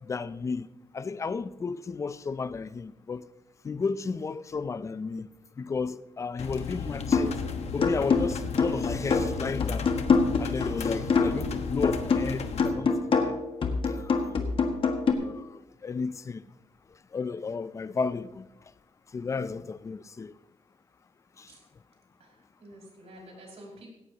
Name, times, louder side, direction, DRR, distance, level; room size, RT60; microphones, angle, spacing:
voice 1, 0.1-0.7 0.9-3.3 3.6-5.3 5.6-7.3 7.7-9.9 10.4-13.4 13.9-14.3 15.2-16.4 17.1-18.5 19.1-20.3 21.4-21.5, left 4 dB, 25° left, 0.4 m, -33 dB
sound 1, 6.4-12.7, left 5 dB, 65° left, 1.3 m, -35 dB
sound 2, 7.1-7.4 7.8-11.5 11.8-15.1, left 4 dB, 50° left, 1.6 m, -25 dB
voice 2, 22.2-23.9, right 1 dB, 65° right, 5.6 m, -49 dB
17.5 x 17.0 x 2.9 m
wide cardioid pair, 180°, 12 cm